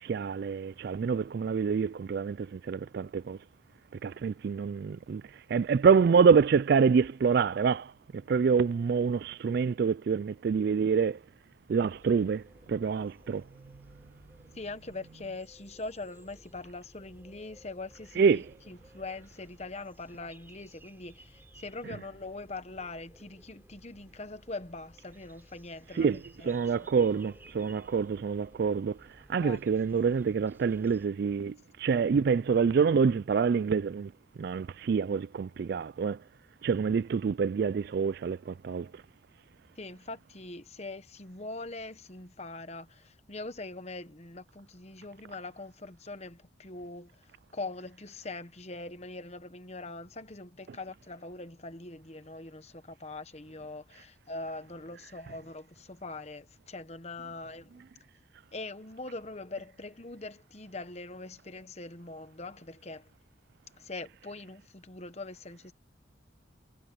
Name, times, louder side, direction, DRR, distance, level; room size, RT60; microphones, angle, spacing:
voice 1, 0.0-3.4 4.0-5.2 5.5-7.9 8.3-11.2 11.7-12.4 12.7-13.4 18.2-18.4 26.0-26.2 26.4-29.0 29.3-34.1 34.4-36.2 36.6-38.9, right 6 dB, 50° right, 0.3 m, -26 dB
sound 1, 11.7-31.1, right 1 dB, 10° right, 4.3 m, -57 dB
voice 2, 14.5-26.9 29.4-29.6 39.8-57.8 58.5-63.1 63.8-65.7, left 2 dB, 35° left, 1.1 m, -42 dB
head